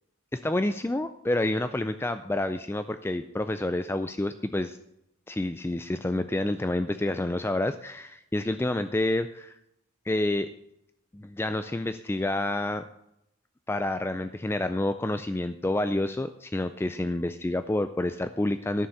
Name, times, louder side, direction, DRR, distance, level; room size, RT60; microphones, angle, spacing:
voice 1, 0.3-4.8 5.3-9.6 10.1-10.5 11.1-12.8 13.7-18.9, left 1 dB, 10° left, 10 dB, 0.3 m, -28 dB
11.0 x 6.8 x 7.1 m, 0.79 s
head